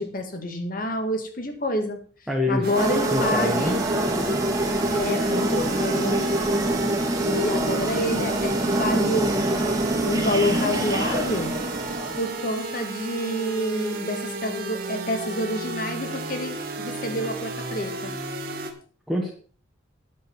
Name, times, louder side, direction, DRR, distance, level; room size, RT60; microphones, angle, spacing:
voice 1, 0.0-2.0 2.5-3.8 4.9-6.4 7.3-9.6 10.0-11.5 12.2-18.1, left 1 dB, 50° left, 6 dB, 1.9 m, -28 dB
voice 2, 2.3-2.7 3.1-3.8 19.1-19.3, left 1 dB, ahead, -1 dB, 1.4 m, -25 dB
sound 1, 2.6-18.7, right 2 dB, 50° right, 1.8 m, -33 dB
mountain-temple, 2.7-12.5, right 1 dB, 20° right, 1.7 m, -25 dB
9.6 x 7.6 x 5.8 m, 0.43 s
head